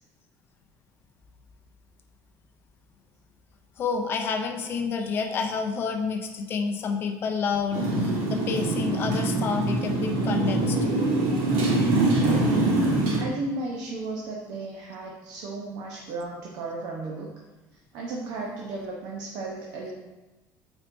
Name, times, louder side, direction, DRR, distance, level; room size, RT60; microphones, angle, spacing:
voice 1, 3.8-10.9, left 5 dB, 30° left, 4 dB, 0.5 m, -29 dB
Motorcycle, 7.7-13.2, right 2 dB, 80° right, 1.6 m, -24 dB
voice 2, 13.1-17.3 17.9-19.9, right 2 dB, 55° right, -2 dB, 0.8 m, -34 dB
8.7 x 4.4 x 2.6 m, 1.1 s
cardioid pair, 175°, 8 cm